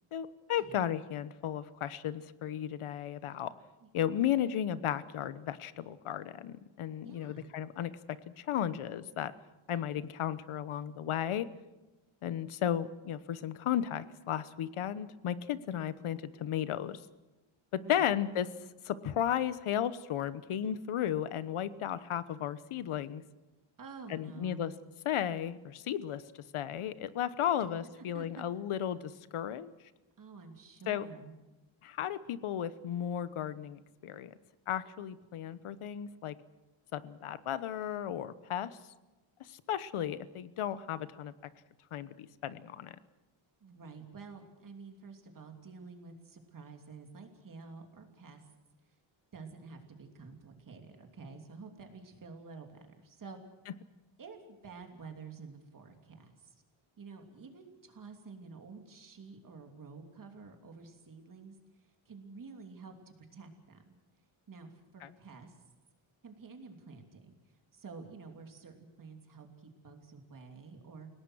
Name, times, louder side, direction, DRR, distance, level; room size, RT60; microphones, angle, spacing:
voice 1, 0.1-3.5 3.9-7.9 8.4-9.3 9.7-11.5 12.2-17.0 17.7-18.5 18.8-23.2 24.1-24.7 25.0-29.7 30.9-31.0 31.8-34.3 34.7-36.3 36.9-38.8 39.4-41.3 41.9-42.9 65.0-65.1, left 10 dB, 85° left, 15 dB, 1.1 m, -34 dB
voice 2, 7.0-7.5 17.8-18.1 23.8-24.7 28.1-28.4 30.2-31.3 43.6-48.4 49.3-53.4 54.2-56.5 57.0-61.5 62.1-63.8 64.5-65.5 66.2-67.3 67.7-71.1, right 4 dB, 40° right, 4 dB, 3.0 m, -50 dB
30.0 x 18.0 x 6.4 m, 1.1 s
wide cardioid pair, 180°, 49 cm